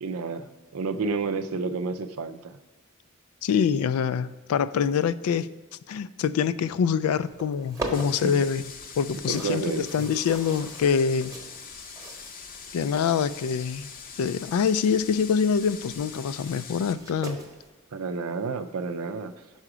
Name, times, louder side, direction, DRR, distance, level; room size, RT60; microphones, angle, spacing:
voice 1, 0.0-2.6 8.2-8.4 9.3-10.1 17.9-19.3, right 4 dB, 90° right, 10 dB, 0.5 m, -30 dB
voice 2, 3.4-5.5 5.9-8.6 9.0-11.3 12.7-13.9 14.2-17.4, left 6 dB, 85° left, 15 dB, 0.3 m, -25 dB
sound 1, 7.0-17.7, right 2 dB, 15° right, 0.9 m, -42 dB
sound 2, 7.9-16.9, left 6 dB, 40° left, 0.6 m, -43 dB
5.6 x 4.9 x 6.0 m, 1.3 s
head